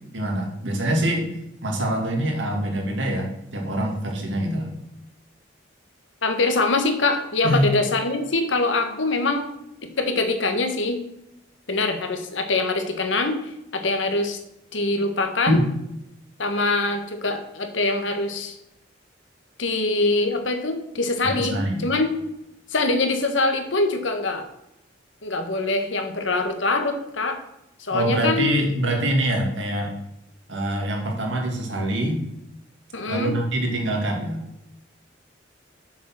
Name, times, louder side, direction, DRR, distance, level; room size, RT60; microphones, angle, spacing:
voice 1, 0.1-1.3 1.6-4.7 7.4-7.7 15.5-15.6 21.4-21.9 27.9-29.9 30.5-32.2 33.1-34.4, right 1 dB, 75° right, 1 dB, 2.3 m, -24 dB
voice 2, 6.2-9.5 10.0-11.0 11.7-13.4 13.7-14.4 14.7-15.6 16.4-18.5 19.6-22.1 22.7-24.4 25.2-27.4 27.8-28.5 32.9-33.3, left 3 dB, 80° left, 6 dB, 1.4 m, -23 dB
7.2 x 6.3 x 6.1 m, 0.83 s
head